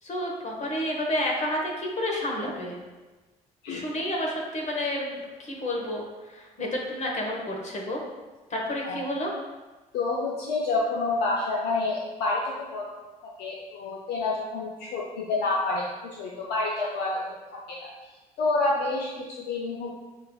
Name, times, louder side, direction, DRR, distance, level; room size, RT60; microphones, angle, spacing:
voice 1, 0.0-2.8 3.7-8.0 8.5-9.3, left 1 dB, 40° left, -1 dB, 1.0 m, -30 dB
voice 2, 9.9-12.9 13.2-17.2 17.7-17.9 18.4-19.9, left 3 dB, 65° left, -4 dB, 0.5 m, -28 dB
6.3 x 2.5 x 2.2 m, 1.2 s
figure-of-eight pair, 45°, 19 cm